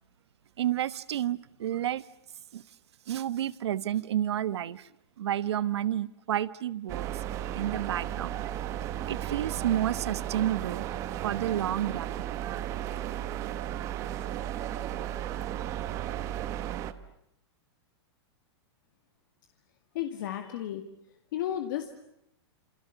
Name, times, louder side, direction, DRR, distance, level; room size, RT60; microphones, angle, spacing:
voice 1, 0.6-2.0 2.5-2.6 3.1-4.9 5.2-7.1 7.5-8.4 9.1-10.8 11.2-12.2, right 11 dB, 75° right, 17 dB, 1.2 m, -30 dB
sound 1, 6.9-16.9, right 11 dB, 20° right, 1.1 m, -34 dB
voice 2, 19.9-20.8 21.3-22.0, left 11 dB, 45° left, 6 dB, 2.1 m, -33 dB
29.0 x 28.0 x 7.0 m, 0.81 s
supercardioid pair, 175°, 14 cm